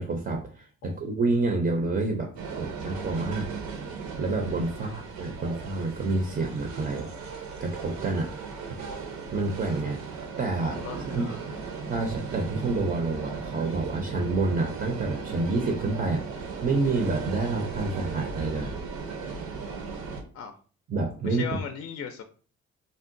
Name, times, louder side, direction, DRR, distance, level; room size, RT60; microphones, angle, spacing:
voice 1, 0.0-2.3 2.6-3.5 4.2-7.1 7.6-8.3 8.7-8.8 9.3-10.8 11.1-11.3 11.9-18.8 20.9-21.4, right 3 dB, 30° right, 3 dB, 0.5 m, -28 dB
sound 1, 2.4-20.2, right 5 dB, 70° right, 0.7 m, -37 dB
voice 2, 10.6-11.7 20.3-20.5 21.2-22.2, left 7 dB, 50° left, 7 dB, 0.4 m, -38 dB
3.7 x 2.1 x 2.5 m, 0.41 s
cardioid pair, 90°, 30 cm